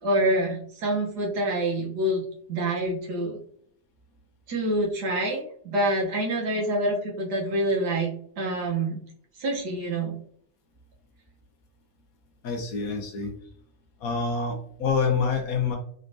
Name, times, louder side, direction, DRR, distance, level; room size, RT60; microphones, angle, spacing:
voice 1, 0.0-3.4 4.5-8.1 8.4-9.0 9.4-10.2, right 1 dB, 85° right, -1 dB, 1.7 m, -26 dB
voice 2, 12.4-13.3 14.0-15.8, left 5 dB, 65° left, 2 dB, 1.2 m, -26 dB
4.2 x 3.2 x 2.7 m, 0.63 s
omnidirectional pair, 1.7 m